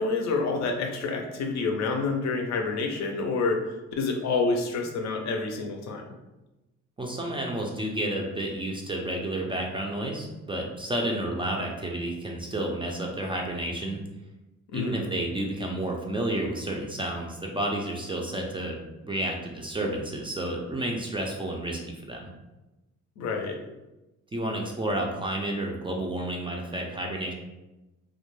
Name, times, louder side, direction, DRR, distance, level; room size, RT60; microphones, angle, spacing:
voice 1, 0.0-3.6 4.0-6.1 14.7-15.1 23.2-23.6, left 3 dB, 65° left, 3 dB, 0.5 m, -28 dB
voice 2, 7.0-14.0 14.7-18.8 19.0-22.3 24.3-27.3, right 1 dB, 15° right, 0 dB, 0.3 m, -31 dB
2.2 x 2.1 x 3.0 m, 1.0 s
cardioid pair, 90°, 30 cm